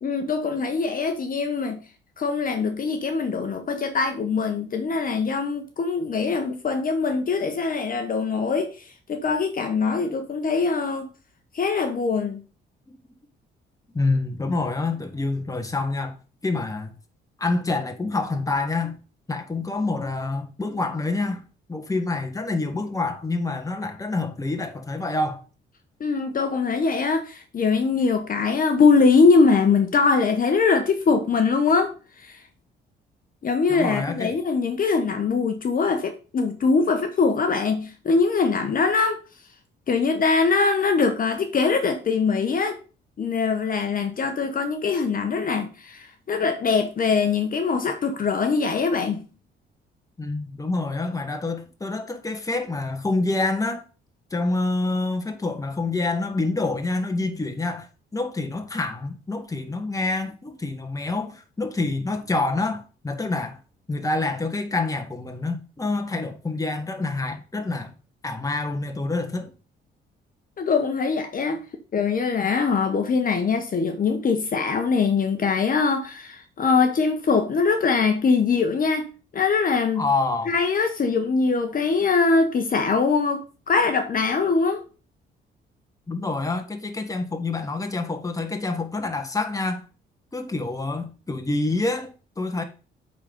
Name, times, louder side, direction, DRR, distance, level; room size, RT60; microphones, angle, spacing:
voice 1, 0.0-1.8 2.2-11.1 11.5-12.4 26.0-32.4 33.4-39.2 39.9-42.8 43.2-49.3 70.6-71.6 71.9-80.1 80.5-84.8, left 4 dB, 45° left, 1.0 m, -22 dB
voice 2, 13.9-16.1 16.4-16.9 17.4-19.0 19.3-21.4 21.7-25.4 33.7-34.3 50.2-53.8 54.3-63.6 63.9-67.9 68.2-69.5 80.0-80.5 86.1-89.8 90.3-92.6, left 3 dB, 15° left, 1.5 m, -27 dB
8.4 x 4.1 x 5.3 m
cardioid pair, 90°, 20 cm